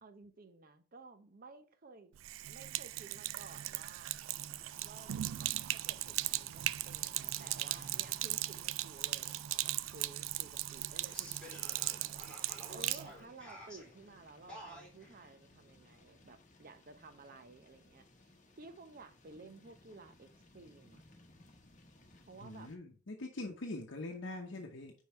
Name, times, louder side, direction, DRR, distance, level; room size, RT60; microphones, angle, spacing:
voice 1, 0.0-2.1 2.5-4.1 4.8-18.1 18.6-21.0 22.3-22.7, right 3 dB, 50° right, 0.7 m, -55 dB
Sink (filling or washing), 2.1-13.1, right 15 dB, 85° right, 0.3 m, -38 dB
sound 1, 4.1-22.8, left 2 dB, 40° left, 1.1 m, -63 dB
sound 2, 4.6-15.3, equal, 5° left, 3.3 m, -55 dB
voice 2, 22.4-24.9, left 2 dB, 70° left, 0.8 m, -43 dB
5.3 x 4.6 x 4.4 m
head